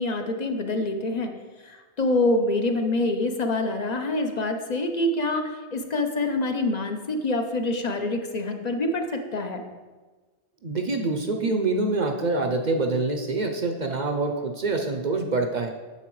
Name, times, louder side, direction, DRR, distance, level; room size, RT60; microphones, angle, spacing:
voice 1, 0.0-1.3 1.6-9.6, left 2 dB, 45° left, 5 dB, 0.8 m, -26 dB
voice 2, 10.6-15.7, right 3 dB, 50° right, 4 dB, 0.7 m, -25 dB
9.8 x 7.6 x 3.1 m, 1.3 s
omnidirectional pair, 1.1 m